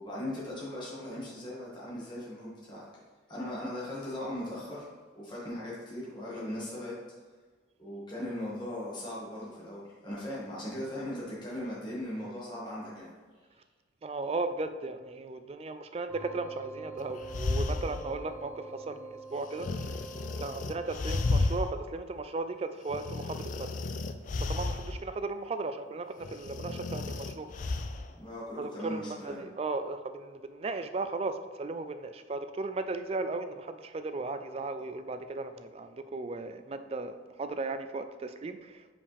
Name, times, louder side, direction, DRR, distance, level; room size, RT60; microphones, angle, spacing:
voice 1, 0.0-2.8 3.3-4.9 5.1-7.0 7.8-13.1 28.1-29.4, left 1 dB, 25° left, -7 dB, 1.8 m, -38 dB
voice 2, 14.0-19.7 20.4-23.7 24.5-27.5 28.6-31.3 31.6-38.9, right 3 dB, 35° right, 9 dB, 0.3 m, -36 dB
sound 1, 16.1-21.5, right 3 dB, 15° right, 1.3 m, -45 dB
sound 2, 17.0-18.2 19.6-21.7 22.2-22.3 22.9-25.0 26.2-28.1, left 3 dB, 45° left, 0.4 m, -33 dB
6.8 x 5.0 x 3.4 m, 1.4 s
head